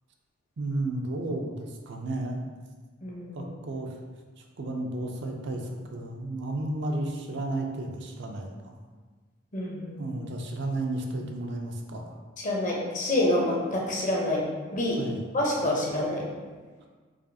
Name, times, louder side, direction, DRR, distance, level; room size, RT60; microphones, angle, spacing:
voice 1, 0.6-2.4 3.3-4.0 4.4-8.8 10.0-12.0 14.9-15.2 16.8-16.9, right 2 dB, 65° right, 2 dB, 0.5 m, -33 dB
voice 2, 3.0-3.5 9.5-10.2 12.4-14.4 14.7-15.0 15.3-16.3, left 1 dB, 40° left, -3 dB, 0.7 m, -27 dB
4.8 x 2.4 x 2.7 m, 1.4 s
head